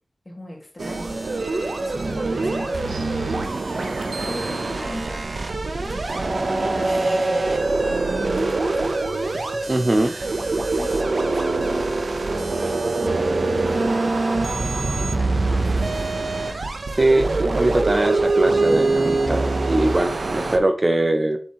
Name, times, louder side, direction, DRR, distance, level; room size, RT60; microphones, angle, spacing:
voice 1, 0.2-3.4 4.2-7.5 8.0-8.9 10.5-14.3 14.8-15.9, left 1 dB, 30° left, -1 dB, 2.8 m, -39 dB
sound 1, 0.8-20.6, right 3 dB, 75° right, 1.0 m, -23 dB
voice 2, 9.7-10.1 17.0-21.4, right 2 dB, 35° right, 6 dB, 0.7 m, -21 dB
7.7 x 6.9 x 3.2 m, 0.43 s
wide cardioid pair, 85°, 0 cm